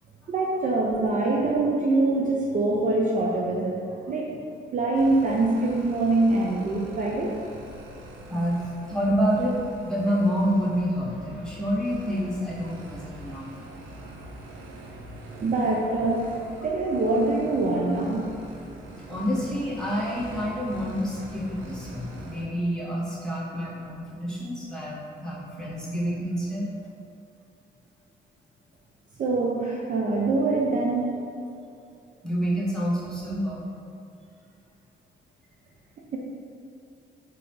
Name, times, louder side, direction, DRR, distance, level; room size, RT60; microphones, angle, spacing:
voice 1, 0.3-4.4 4.7-7.4 15.4-16.4 16.6-18.2 29.2-31.1 36.1-36.2, right 2 dB, 40° right, -2 dB, 0.4 m, -24 dB
sound 1, 4.9-22.4, right 1 dB, 80° right, 0.6 m, -44 dB
voice 2, 8.3-13.5 19.1-26.7 32.2-33.7, equal, 5° left, -8 dB, 1.2 m, -28 dB
4.0 x 2.8 x 3.2 m, 2.5 s
cardioid pair, 90°, 20 cm